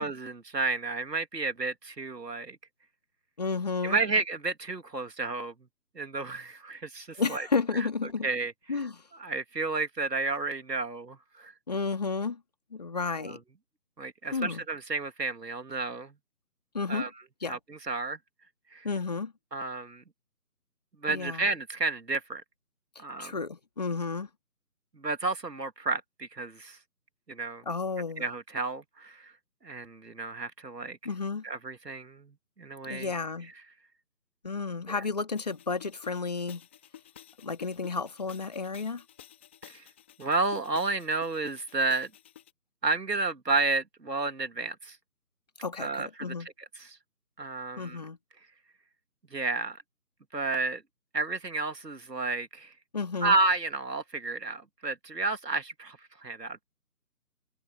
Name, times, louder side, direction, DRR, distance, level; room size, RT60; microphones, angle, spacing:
voice 1, 0.0-2.6 3.8-5.5 6.0-7.5 7.8-7.9 8.2-8.5 9.2-11.5 13.2-13.4 14.0-16.1 16.9-17.1 17.5-18.2 18.7-18.9 19.5-20.0 21.0-22.4 23.0-23.3 24.9-26.8 27.3-27.6 28.2-29.3 29.6-31.0 31.4-33.1 34.9-35.0 39.6-39.8 40.2-42.1 42.8-45.0 45.8-46.3 47.4-48.0 49.3-49.8 50.3-50.8 51.1-52.7 53.2-56.6, right 3 dB, 85° right, 2.4 m, -31 dB
voice 2, 3.4-4.0 7.1-8.3 8.7-9.1 11.7-12.4 12.7-13.4 14.3-14.6 16.7-17.1 17.4-17.6 18.8-19.3 21.1-21.5 22.9-24.3 27.6-28.3 31.0-31.4 32.9-33.5 34.4-36.6 37.4-39.0 45.6-46.5 47.8-48.2 52.9-53.3, left 4 dB, 25° left, 1.8 m, -32 dB
sound 1, 35.4-42.5, left 11 dB, 5° left, 1.9 m, -52 dB
figure-of-eight pair, 165°, 48 cm